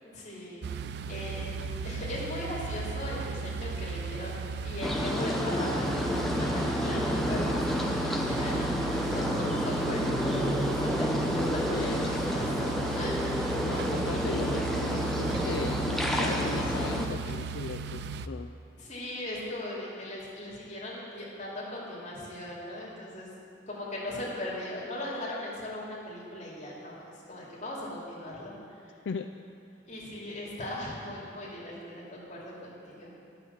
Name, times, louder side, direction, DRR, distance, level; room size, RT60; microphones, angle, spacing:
voice 1, 0.1-0.7 1.1-1.5 1.8-12.5 12.9-13.2 18.7-23.3 23.7-26.9 27.3-28.5 29.9-33.1, left 1 dB, 40° left, -6 dB, 2.6 m, -38 dB
sound 1, 0.6-18.3, right 4 dB, 60° right, 0.3 m, -36 dB
sound 2, 4.8-17.1, equal, ahead, 0.7 m, -29 dB
voice 2, 11.7-12.1 13.5-18.5 29.1-29.3, left 5 dB, 80° left, 5 dB, 0.4 m, -37 dB
11.0 x 5.9 x 7.0 m, 2.4 s
head